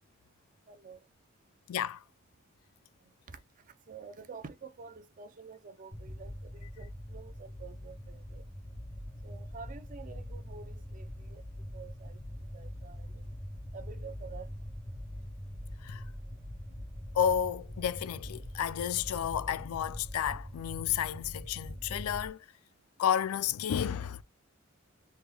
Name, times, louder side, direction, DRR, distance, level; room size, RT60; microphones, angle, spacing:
voice 1, 0.7-1.0 3.3-3.4 3.9-8.4 9.2-11.4 11.7-12.2 12.5-13.2 13.7-14.5, right 5 dB, 40° right, 0.5 m, -49 dB
voice 2, 1.7-2.0 15.8-16.0 17.1-22.4 23.0-24.2, left 9 dB, 85° left, 0.3 m, -31 dB
sound 1, 5.9-22.3, equal, 5° left, 0.6 m, -43 dB
3.5 x 2.2 x 3.3 m
head